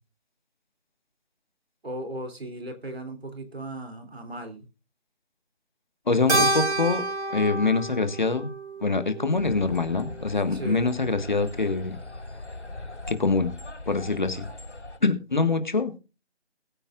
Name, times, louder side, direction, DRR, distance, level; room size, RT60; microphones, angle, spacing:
voice 1, 1.8-4.7 10.5-11.0, right 1 dB, 60° right, 3.3 m, -36 dB
voice 2, 6.1-7.0 7.3-8.5 8.8-11.9 13.1-13.5 13.9-14.5 15.0-16.0, left 3 dB, 45° left, 1.6 m, -24 dB
Keyboard (musical), 6.3-10.9, right 2 dB, 80° right, 3.7 m, -29 dB
sound 1, 9.4-15.0, left 2 dB, 85° left, 5.9 m, -40 dB
21.5 x 8.8 x 2.5 m
figure-of-eight pair, 170°, 34 cm